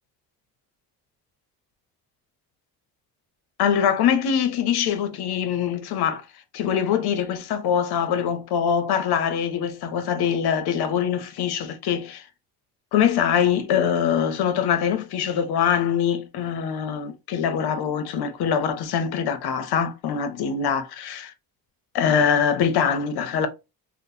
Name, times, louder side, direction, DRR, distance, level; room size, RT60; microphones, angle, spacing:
voice 1, 3.6-6.2 6.5-12.2 12.9-21.3 21.9-23.5, left 8 dB, 75° left, 0.7 m, -23 dB
3.6 x 2.1 x 2.7 m
cardioid pair, 95°, 39 cm